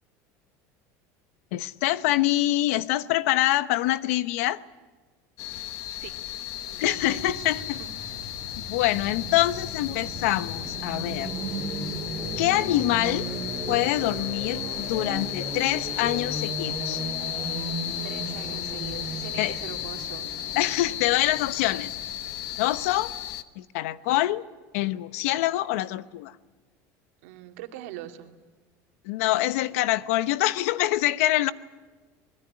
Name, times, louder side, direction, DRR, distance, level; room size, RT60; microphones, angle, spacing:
voice 1, 1.5-4.6 6.8-7.8 8.6-11.3 12.4-13.3 13.7-17.0 19.4-19.5 20.6-21.9 22.6-23.1 23.6-24.4 24.7-26.3 29.0-31.5, left 15 dB, 85° left, 1.0 m, -25 dB
sound 1, 5.4-23.4, left 13 dB, 50° left, 1.1 m, -35 dB
voice 2, 6.7-7.9 18.0-20.3 27.2-28.3, right 12 dB, 85° right, 2.7 m, -42 dB
sound 2, 6.8-19.9, left 2 dB, 35° left, 6.3 m, -46 dB
sound 3, 8.7-22.6, right 3 dB, 10° right, 6.5 m, -36 dB
25.5 x 21.0 x 9.8 m
cardioid pair, 175°, 7 cm